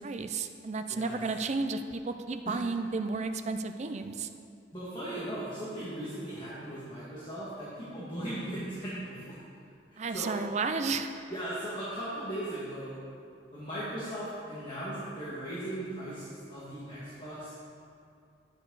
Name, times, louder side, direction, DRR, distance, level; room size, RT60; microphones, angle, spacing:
voice 1, 0.0-4.3 10.0-11.1, right 4 dB, 40° right, 8 dB, 0.5 m, -32 dB
voice 2, 0.9-1.2 2.5-2.6 4.7-9.4 10.1-10.3 11.3-13.0 13.5-17.5, right 1 dB, 30° left, -11 dB, 1.9 m, -38 dB
11.5 x 7.3 x 4.0 m, 2.4 s
head